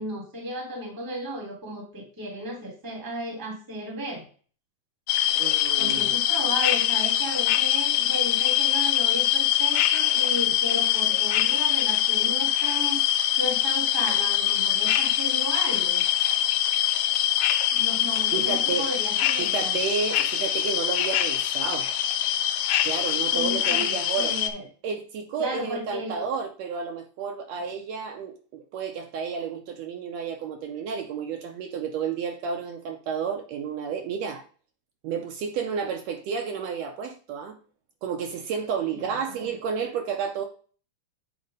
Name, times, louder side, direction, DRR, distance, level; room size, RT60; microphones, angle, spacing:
voice 1, 0.0-4.3 5.8-16.0 17.7-19.7 23.3-24.6 25.4-26.2 27.6-27.7 38.9-39.5, right 1 dB, 10° right, 1 dB, 1.0 m, -34 dB
sound 1, 5.1-24.5, left 12 dB, 85° left, 1.4 m, -23 dB
voice 2, 5.4-6.2 18.3-18.9 19.4-21.9 22.8-24.4 24.8-34.4 35.0-37.6 38.0-40.5, right 6 dB, 75° right, 4 dB, 1.7 m, -31 dB
8.1 x 2.9 x 5.1 m, 0.41 s
omnidirectional pair, 3.3 m